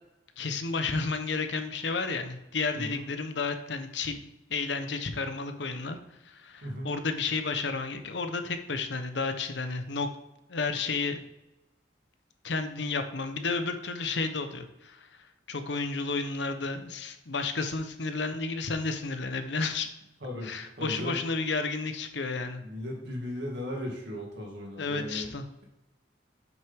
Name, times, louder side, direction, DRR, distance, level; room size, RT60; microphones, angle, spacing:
voice 1, 0.4-6.0 6.2-10.1 10.5-11.2 12.4-15.1 15.5-19.9 20.4-22.6 24.8-25.4, left 4 dB, 80° left, 8 dB, 0.8 m, -32 dB
voice 2, 2.7-3.1 6.6-7.0 20.2-21.2 22.6-25.3, left 1 dB, 70° right, -1 dB, 2.2 m, -37 dB
7.7 x 6.2 x 3.6 m, 0.93 s
head